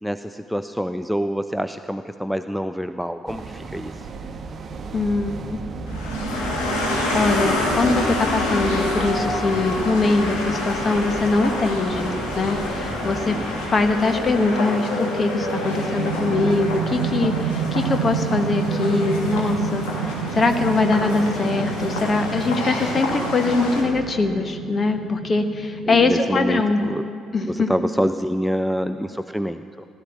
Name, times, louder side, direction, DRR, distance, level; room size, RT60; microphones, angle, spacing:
voice 1, 0.0-4.1 13.3-13.4 25.9-27.1 27.4-29.9, equal, ahead, 10 dB, 0.5 m, -26 dB
sound 1, 3.3-14.5, right 3 dB, 40° right, 1.0 m, -33 dB
voice 2, 4.9-5.6 7.1-13.4 13.7-26.9 27.3-27.7, left 3 dB, 30° left, 7 dB, 1.4 m, -22 dB
sound 2, 5.9-23.8, left 2 dB, 65° left, 2.6 m, -27 dB
sound 3, 14.8-27.1, right 9 dB, 65° right, 0.5 m, -30 dB
16.0 x 12.0 x 7.3 m, 2.5 s
figure-of-eight pair, 50°, 0 cm